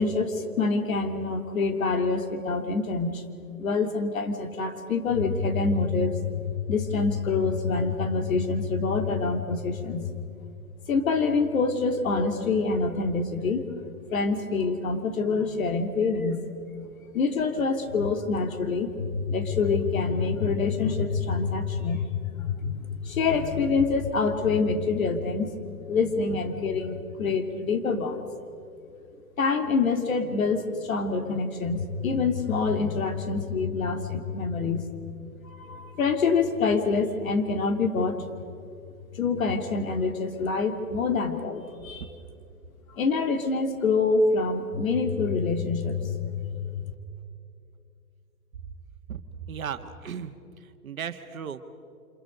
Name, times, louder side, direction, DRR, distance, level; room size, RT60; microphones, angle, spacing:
voice 1, 0.0-3.2 3.6-10.1 10.9-13.7 14.1-16.4 17.1-25.6 25.9-28.3 29.4-34.9 35.4-38.2 39.1-42.0 42.9-46.8, left 4 dB, 65° left, 6 dB, 2.6 m, -26 dB
voice 2, 49.5-50.3 50.6-51.6, right 7 dB, 65° right, 8 dB, 1.6 m, -36 dB
28.5 x 26.5 x 5.3 m, 2.6 s
figure-of-eight pair, 125°, 44 cm